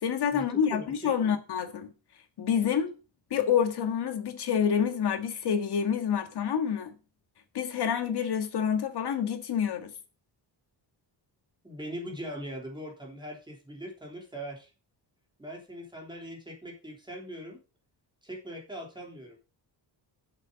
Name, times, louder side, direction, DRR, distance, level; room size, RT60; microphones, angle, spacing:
voice 1, 0.0-1.9 2.4-2.9 3.3-6.9 7.5-9.9, left 8 dB, 60° left, 1.7 m, -28 dB
voice 2, 11.6-14.7 15.4-17.6 18.2-19.4, equal, 10° right, 3.3 m, -41 dB
8.1 x 8.0 x 5.1 m
wide cardioid pair, 145°, 43 cm